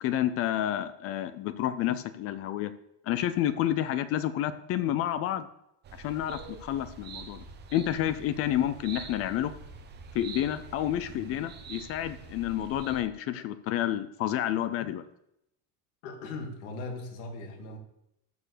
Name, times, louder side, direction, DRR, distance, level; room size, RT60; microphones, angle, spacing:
voice 1, 0.0-2.7 3.1-5.5 6.0-7.4 7.7-9.5 10.1-15.0, left 12 dB, 35° left, 13 dB, 0.4 m, -29 dB
sound 1, 5.8-13.0, right 5 dB, 25° right, 0.8 m, -45 dB
voice 2, 16.0-17.8, left 2 dB, 70° left, 2 dB, 2.5 m, -39 dB
13.0 x 4.6 x 6.7 m, 0.82 s
cardioid pair, 170°, 42 cm